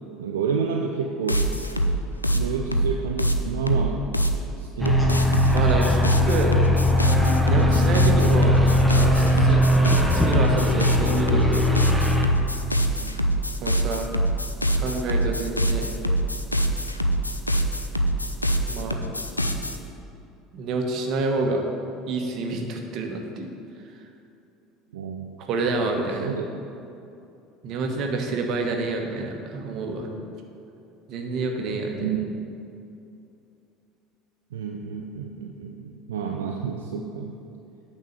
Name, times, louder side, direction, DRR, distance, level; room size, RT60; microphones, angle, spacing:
voice 1, 0.2-1.5 2.3-4.0 4.6-5.4 12.9-13.2 24.9-25.3 26.2-26.5 32.0-32.3 34.5-37.3, right 6 dB, 70° right, 2 dB, 0.5 m, -29 dB
sound 1, 1.3-4.4 4.9-19.8, right 1 dB, 85° left, 0.4 m, -24 dB
sound 2, 4.8-12.3, left 1 dB, ahead, 1.2 m, -20 dB
voice 2, 5.5-6.5 7.4-8.6 8.9-9.7 10.1-11.6 13.6-14.1 14.7-15.9 18.7-19.1 20.5-21.6 22.1-23.5 25.5-26.3 27.6-30.1 31.1-32.0, right 3 dB, 50° right, 3 dB, 1.1 m, -28 dB
9.1 x 4.4 x 6.5 m, 2.7 s
figure-of-eight pair, 65°, 0 cm